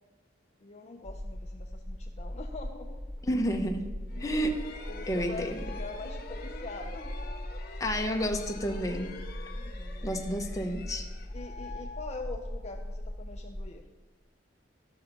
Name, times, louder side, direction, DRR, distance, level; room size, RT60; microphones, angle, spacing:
voice 1, 0.6-3.0 4.1-4.3 4.9-7.6 9.5-10.1 11.3-13.8, left 3 dB, 35° left, 3 dB, 0.6 m, -44 dB
sound 1, 1.0-13.7, left 1 dB, ahead, 1.2 m, -40 dB
voice 2, 3.2-4.6 5.1-5.6 7.8-9.2 10.0-11.1, equal, 20° left, 3 dB, 0.9 m, -31 dB
sound 2, 4.1-12.8, left 3 dB, 50° left, 1.0 m, -46 dB
12.5 x 6.5 x 5.6 m, 1.3 s
head